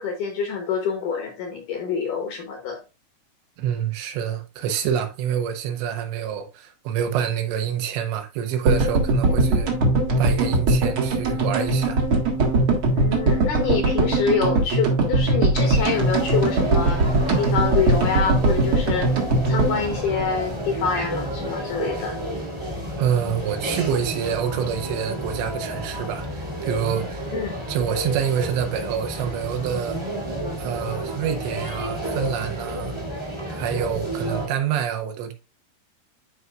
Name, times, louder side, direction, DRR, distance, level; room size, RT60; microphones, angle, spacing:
voice 1, 0.0-2.8 12.9-17.0 17.4-19.1 19.5-22.2 27.3-27.6, left 6 dB, 70° left, 2.0 m, -26 dB
voice 2, 3.6-9.7 10.2-12.0 23.0-27.3 27.7-30.0 30.6-33.0 33.5-35.3, right 8 dB, 85° right, 3.2 m, -27 dB
sound 1, 8.6-20.9 21.1-21.2 21.4-21.5, right 2 dB, 65° right, 1.3 m, -21 dB
sound 2, 15.7-34.5, equal, 30° right, 0.4 m, -31 dB
12.0 x 4.6 x 2.4 m
omnidirectional pair, 4.9 m